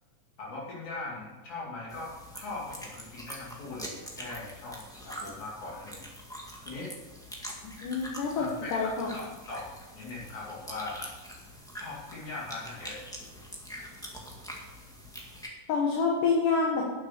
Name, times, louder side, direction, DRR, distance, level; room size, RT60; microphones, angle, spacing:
voice 1, 0.4-6.0 6.7-6.9 8.4-11.1 11.8-13.0, left 2 dB, 65° left, -6 dB, 4.2 m, -40 dB
sound 1, 1.9-15.5, equal, ahead, 1.0 m, -44 dB
voice 2, 7.6-9.1 15.7-16.8, left 4 dB, 90° left, -1 dB, 3.0 m, -27 dB
10.5 x 8.1 x 6.7 m, 1.3 s
omnidirectional pair, 3.6 m